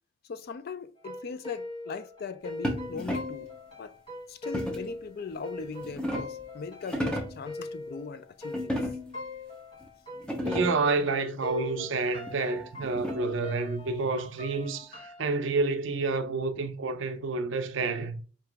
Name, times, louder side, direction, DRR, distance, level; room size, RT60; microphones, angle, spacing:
voice 1, 0.3-3.5 3.8-3.9 4.3-8.7, left 5 dB, 50° left, 0.3 m, -39 dB
sound 1, 1.0-11.1 11.4-15.2, left 2 dB, 25° left, 1.3 m, -41 dB
sound 2, 2.6-3.5 4.5-5.0 5.6-6.4 6.8-7.5 8.5-9.2 9.8-9.9 10.2-10.9 12.3-13.4, equal, 5° left, 0.6 m, -34 dB
voice 2, 10.4-18.2, right 3 dB, 60° right, 0.5 m, -29 dB
4.7 x 2.9 x 3.3 m
head